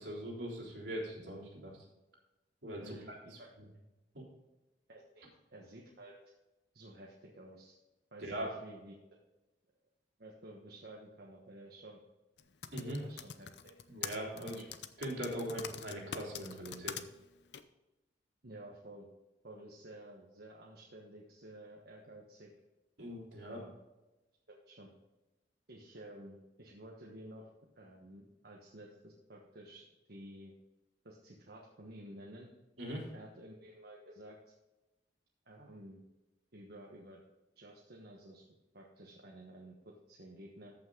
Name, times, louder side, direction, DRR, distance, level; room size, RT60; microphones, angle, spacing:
voice 1, 0.0-1.7 2.6-3.4 4.1-4.2 8.2-8.5 12.7-13.0 13.9-14.6 15.0-17.0 23.0-23.6 32.8-33.0, equal, 80° right, -3 dB, 3.5 m, -41 dB
voice 2, 2.8-3.5 4.9-5.2 5.5-6.1 6.7-7.8 8.1-8.9 10.2-12.0 13.0-13.7 14.3-14.6 18.4-19.1 19.4-22.5 23.4-23.7 24.5-24.9 25.7-27.5 27.7-30.5 31.0-32.5 33.1-34.4 35.5-36.0 36.5-37.2 37.6-40.7, right 1 dB, 60° right, -2 dB, 1.3 m, -52 dB
Typing, 12.4-17.0 17.5-17.6, left 8 dB, 70° left, 0.6 m, -43 dB
14.0 x 5.9 x 3.8 m, 1.0 s
head